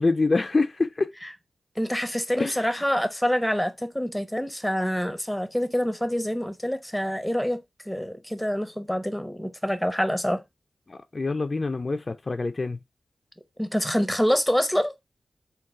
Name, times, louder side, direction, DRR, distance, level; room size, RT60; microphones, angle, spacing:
voice 1, 0.0-1.1 2.4-2.8 10.9-12.8, left 3 dB, 45° left, 0.4 m, -26 dB
voice 2, 1.8-7.6 7.9-10.4 13.6-14.9, equal, 5° left, 0.7 m, -26 dB
3.9 x 2.2 x 3.7 m
cardioid pair, 50°, 0 cm